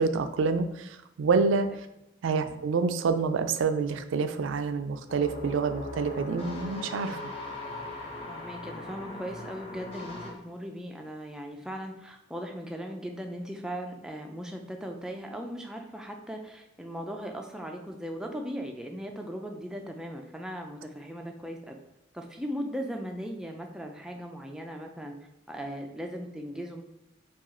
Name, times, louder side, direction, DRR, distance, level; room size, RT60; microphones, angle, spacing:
voice 1, 0.0-1.7 2.2-7.2, right 4 dB, 90° right, 9 dB, 0.4 m, -27 dB
sound 1, 5.1-10.3, left 2 dB, 30° left, 0.7 m, -39 dB
voice 2, 8.3-21.8 22.1-25.1 25.5-26.8, equal, 5° right, 2 dB, 0.4 m, -38 dB
4.7 x 2.4 x 4.2 m, 0.86 s
head